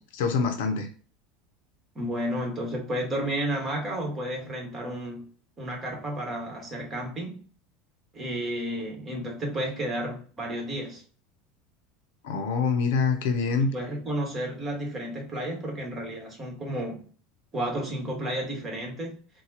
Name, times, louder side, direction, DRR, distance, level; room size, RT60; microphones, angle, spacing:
voice 1, 0.1-0.9 12.2-13.7, left 5 dB, 65° left, 0.6 m, -25 dB
voice 2, 1.9-5.3 5.6-7.4 8.1-11.0 13.6-17.1 17.5-19.2, right 1 dB, 30° right, 1.5 m, -32 dB
4.0 x 2.3 x 2.7 m
figure-of-eight pair, 75°, 0 cm